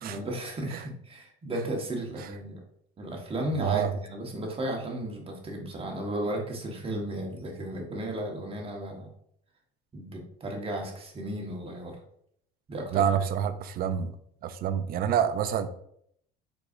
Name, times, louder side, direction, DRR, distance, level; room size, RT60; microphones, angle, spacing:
voice 1, 0.0-2.6 3.0-9.1 9.9-12.0 12.7-13.1, right 1 dB, 30° right, 1 dB, 1.4 m, -34 dB
voice 2, 3.6-3.9 12.9-14.1 14.4-15.7, right 9 dB, 50° right, 11 dB, 0.5 m, -27 dB
4.6 x 4.1 x 2.6 m, 0.68 s
supercardioid pair, 95°, 20 cm